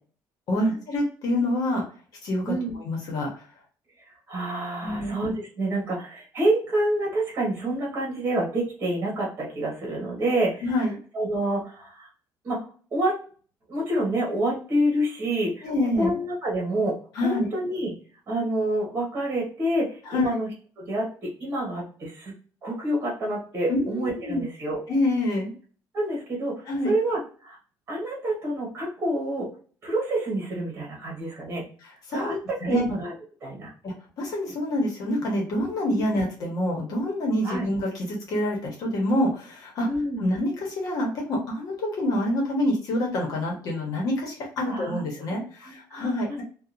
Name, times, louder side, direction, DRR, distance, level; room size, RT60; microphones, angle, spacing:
voice 1, 0.5-1.8 2.2-3.4 4.8-5.1 10.6-10.9 15.6-16.1 17.1-17.5 20.1-20.3 23.7-24.4 24.9-25.5 26.7-26.9 32.1-32.8 33.8-39.9 40.2-46.4, left 1 dB, 55° left, 0 dB, 1.1 m, -27 dB
voice 2, 4.1-10.6 11.1-12.1 12.4-12.6 12.9-13.2 13.7-17.0 17.2-17.9 18.3-20.5 20.8-22.3 22.6-24.8 25.9-27.6 27.9-29.5 29.8-31.6 32.1-33.1 33.4-33.7 35.9-36.3 37.4-37.7 39.8-40.3 44.6-46.4, right 1 dB, 30° right, -3 dB, 1.3 m, -28 dB
2.8 x 2.4 x 2.4 m, 0.42 s
cardioid pair, 145°, 7 cm